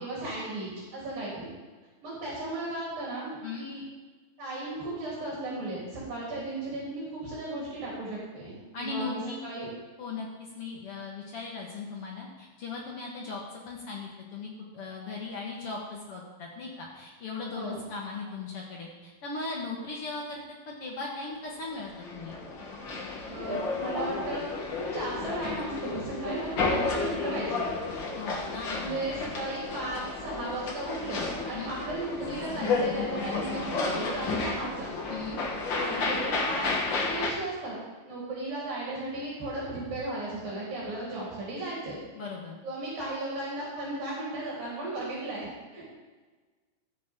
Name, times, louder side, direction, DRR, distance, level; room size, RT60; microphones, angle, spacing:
voice 1, 0.0-1.5 2.0-3.8 4.4-8.5 8.8-9.7 17.5-17.8 23.3-24.5 24.8-27.7 28.7-34.9 35.7-37.8 38.0-42.0 42.6-45.9, right 2 dB, 65° right, -6 dB, 5.3 m, -35 dB
voice 2, 8.7-9.4 10.0-10.3 10.5-22.4 28.1-29.0 31.5-31.7 35.1-35.4 42.1-42.6, left 4 dB, 55° left, -2 dB, 1.6 m, -38 dB
sound 1, 21.7-37.3, left 4 dB, 75° left, 1.0 m, -32 dB
15.0 x 8.5 x 3.8 m, 1.3 s
omnidirectional pair, 4.4 m